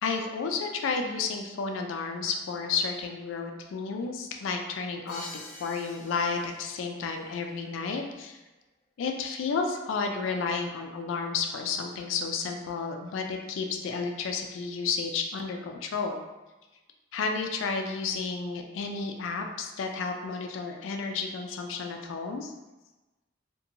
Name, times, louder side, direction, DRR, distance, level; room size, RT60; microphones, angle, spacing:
voice 1, 0.0-5.3 5.6-8.4 9.0-16.2 17.1-22.5, left 5 dB, 65° left, 4 dB, 0.3 m, -32 dB
Crash cymbal, 5.1-6.9, left 1 dB, 35° left, 0.8 m, -45 dB
2.5 x 2.2 x 2.8 m, 1.1 s
head